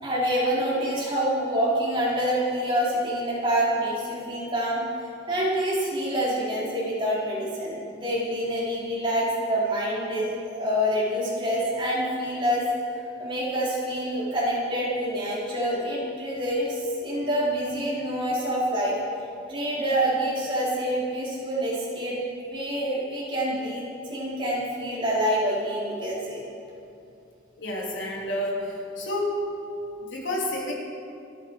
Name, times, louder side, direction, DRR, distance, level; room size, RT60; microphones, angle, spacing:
voice 1, 0.0-4.8 5.3-19.0 19.5-22.2 22.5-23.8 24.1-26.5, equal, 25° right, -7 dB, 4.3 m, -26 dB
voice 2, 27.6-29.4 30.1-30.7, left 1 dB, 70° left, -3 dB, 3.5 m, -29 dB
28.5 x 9.9 x 4.8 m, 2.6 s
head